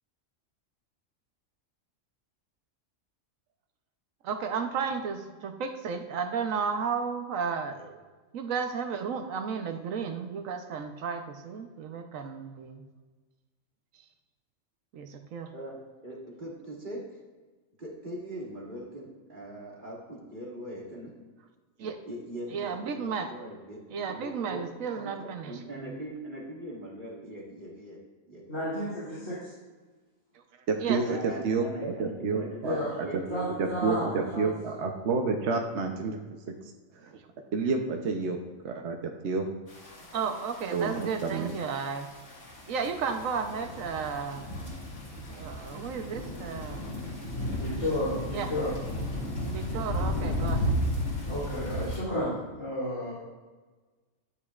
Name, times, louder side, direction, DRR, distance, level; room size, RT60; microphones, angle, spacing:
voice 1, 4.2-8.0 8.3-12.8 14.9-15.5 21.8-22.0 22.5-23.3 23.9-25.9 30.3-30.4 30.8-31.0 37.1-37.2 40.1-42.1 42.7-44.5 45.3-46.8 48.3-48.5 49.4-51.0, right 6 dB, 85° right, 6 dB, 1.2 m, -33 dB
voice 2, 15.5-17.0 17.8-21.1 22.1-24.6 24.9-28.0 28.3-28.5 28.8-28.9 31.0-34.7, right 1 dB, 40° right, -4 dB, 1.9 m, -41 dB
voice 3, 28.5-29.5 32.6-32.9 33.3-34.1 34.3-34.5 47.4-48.7 51.3-53.1, left 1 dB, 80° left, -11 dB, 3.5 m, -32 dB
voice 4, 30.7-33.1 33.6-36.2 36.5-36.6 37.0-37.1 37.5-38.4 38.6-39.0 39.2-39.5 40.7-41.5, right 4 dB, 65° right, 3 dB, 1.0 m, -29 dB
sound 1, 39.7-52.0, left 1 dB, 60° left, 2.0 m, -34 dB
12.5 x 8.4 x 2.4 m, 1.3 s
omnidirectional pair, 1.3 m